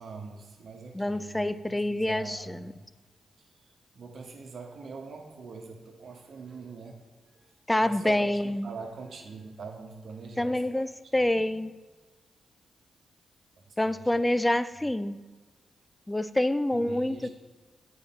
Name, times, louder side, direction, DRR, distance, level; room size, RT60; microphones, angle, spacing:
voice 1, 0.0-2.8 3.4-7.0 7.3-7.5 7.8-10.7 11.0-11.6 13.6-14.2 16.7-17.3, right 4 dB, 70° right, 2 dB, 1.2 m, -44 dB
voice 2, 0.9-2.6 7.7-8.7 10.4-11.7 13.8-15.2 16.1-17.3, left 1 dB, 15° left, 13 dB, 0.3 m, -27 dB
8.5 x 4.8 x 4.2 m, 1.3 s
cardioid pair, 55°, 0 cm